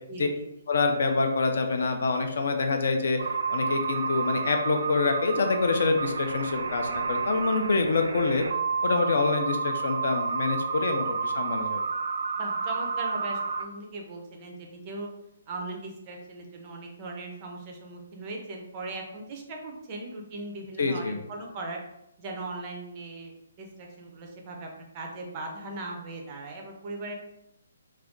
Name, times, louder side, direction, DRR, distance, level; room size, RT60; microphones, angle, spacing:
voice 1, 0.1-0.4 12.4-15.1 15.5-21.8 22.2-24.7 24.9-27.1, right 2 dB, 20° right, 1 dB, 0.4 m, -39 dB
voice 2, 0.7-3.2 3.5-8.4 8.8-11.8 20.8-21.2, left 3 dB, 55° left, 5 dB, 0.4 m, -26 dB
sound 1, 3.2-13.6, right 5 dB, 90° right, 0.3 m, -30 dB
2.4 x 2.2 x 3.5 m, 0.82 s
hypercardioid pair, 175°, 0 cm